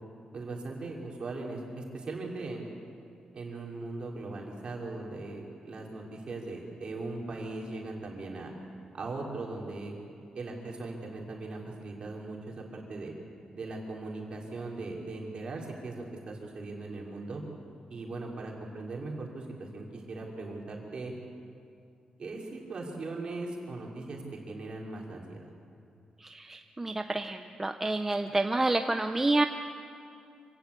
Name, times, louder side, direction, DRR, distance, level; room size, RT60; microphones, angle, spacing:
voice 1, 0.3-2.7 3.3-8.5 8.9-10.0 10.3-13.1 13.5-17.4 17.9-21.1 22.2-25.5, right 3 dB, 40° right, -1 dB, 3.7 m, -39 dB
voice 2, 26.2-29.4, right 2 dB, 15° right, 7 dB, 0.6 m, -29 dB
25.5 x 17.0 x 8.3 m, 2.5 s
wide cardioid pair, 180°, 2 cm